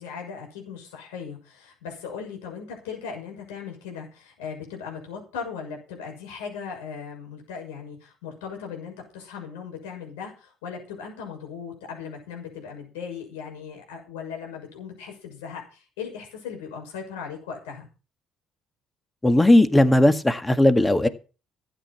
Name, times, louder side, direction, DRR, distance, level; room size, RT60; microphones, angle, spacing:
voice 1, 0.0-17.9, left 6 dB, 90° left, 1 dB, 6.6 m, -38 dB
voice 2, 19.2-21.1, left 1 dB, 15° left, 10 dB, 1.9 m, -17 dB
13.5 x 9.0 x 5.8 m, 0.34 s
supercardioid pair, 65°, 0 cm